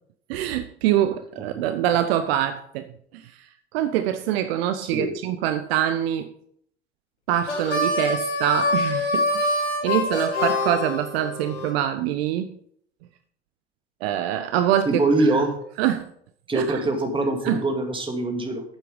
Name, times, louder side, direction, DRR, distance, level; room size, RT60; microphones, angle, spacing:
voice 1, 0.3-3.3 3.7-6.3 7.3-12.5 14.0-15.3 15.8-16.1 16.5-16.8 17.4-17.6, right 11 dB, 60° right, 10 dB, 0.7 m, -25 dB
Harmonica, 7.4-11.7, left 2 dB, 85° left, 1.8 m, -25 dB
voice 2, 14.9-15.6 16.5-18.6, right 2 dB, 15° right, 5 dB, 2.2 m, -23 dB
8.7 x 7.6 x 5.1 m, 0.65 s
hypercardioid pair, 75°, 34 cm